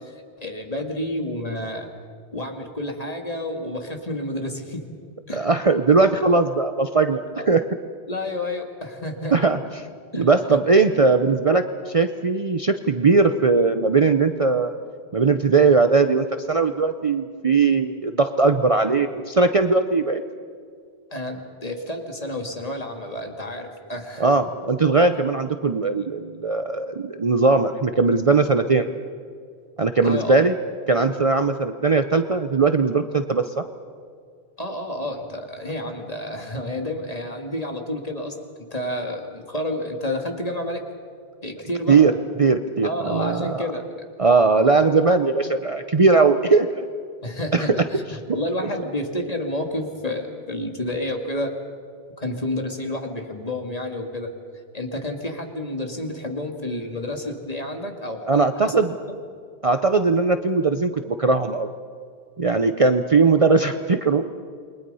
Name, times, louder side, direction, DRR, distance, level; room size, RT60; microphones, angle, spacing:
voice 1, 0.0-1.9 2.3-4.9 5.3-5.5 7.4-7.5 8.1-9.4 10.1-10.3 10.9-11.0 21.1-24.3 30.0-30.4 34.6-38.4 38.7-40.8 41.4-42.0 42.8-43.9 47.2-51.5 52.2-54.3 54.7-58.9, left 1 dB, 35° left, 3 dB, 2.4 m, -30 dB
voice 2, 5.3-7.6 9.3-9.6 10.1-14.7 15.1-20.2 24.2-28.9 29.8-30.5 30.9-33.6 41.9-42.1 42.4-43.7 44.2-46.8 47.5-47.8 58.3-58.9 59.6-61.7 62.4-64.3, right 4 dB, 35° right, 8 dB, 0.7 m, -19 dB
28.5 x 22.5 x 5.6 m, 2.1 s
omnidirectional pair, 1.1 m